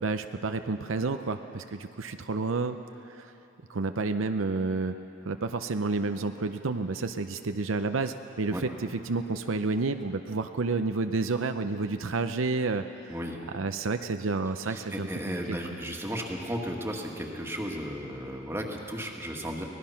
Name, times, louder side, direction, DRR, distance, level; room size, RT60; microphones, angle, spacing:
voice 1, 0.0-2.8 3.1-3.3 3.7-4.9 5.3-12.8 13.5-15.1 15.5-15.6, right 3 dB, 75° right, 8 dB, 0.7 m, -30 dB
voice 2, 14.7-19.6, equal, 10° right, 0 dB, 1.9 m, -34 dB
24.0 x 18.5 x 5.8 m, 3.0 s
head